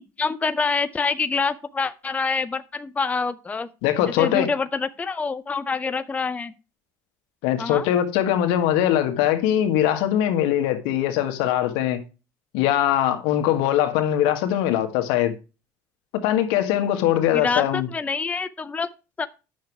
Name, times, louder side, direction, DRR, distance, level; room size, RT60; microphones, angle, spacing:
voice 1, 0.0-3.7 4.1-6.5 7.6-7.9 17.3-18.9 19.2-19.3, left 4 dB, 15° left, 0.6 m, -26 dB
voice 2, 3.8-4.5 7.4-12.0 12.5-15.3 16.1-17.9, left 11 dB, 80° left, 1.7 m, -21 dB
9.4 x 6.7 x 4.7 m
supercardioid pair, 105°, 9 cm